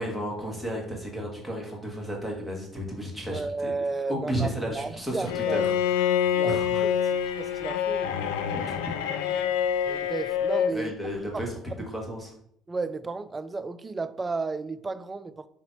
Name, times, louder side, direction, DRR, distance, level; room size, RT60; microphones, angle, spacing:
voice 1, 0.0-3.7 4.1-6.8 8.5-8.7 10.7-12.3, equal, ahead, -2 dB, 1.6 m, -33 dB
voice 2, 3.3-5.7 6.3-8.4 9.9-10.9 11.3-11.4 11.8-11.9 12.7-15.5, right 3 dB, 25° right, 14 dB, 0.3 m, -33 dB
Bowed string instrument, 5.3-10.8, left 8 dB, 85° left, 0.4 m, -26 dB
3.9 x 2.8 x 4.6 m, 0.70 s
supercardioid pair, 75°, 0 cm